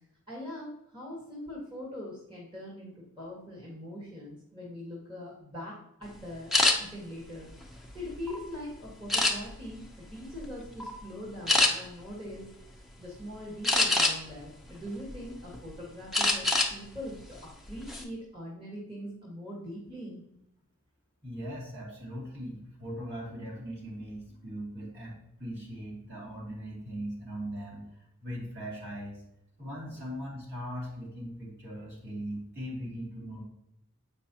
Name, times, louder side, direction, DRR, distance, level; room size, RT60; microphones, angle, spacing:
voice 1, 0.3-5.7 6.0-6.5 6.8-7.5 7.9-9.8 10.1-12.5 12.7-20.2 30.0-30.1, left 1 dB, 20° right, -5 dB, 1.5 m, -42 dB
sound 1, 6.5-6.8 7.4-8.4 9.1-9.7 10.2-10.4 10.8-11.0 11.5-11.7 13.6-14.4 14.9-15.6 16.1-16.7 17.1-17.3 17.7-18.0, left 2 dB, ahead, 0.7 m, -25 dB
voice 2, 21.2-29.2 29.6-33.4, equal, 50° right, -4 dB, 2.7 m, -40 dB
7.9 x 5.3 x 2.8 m, 0.80 s
head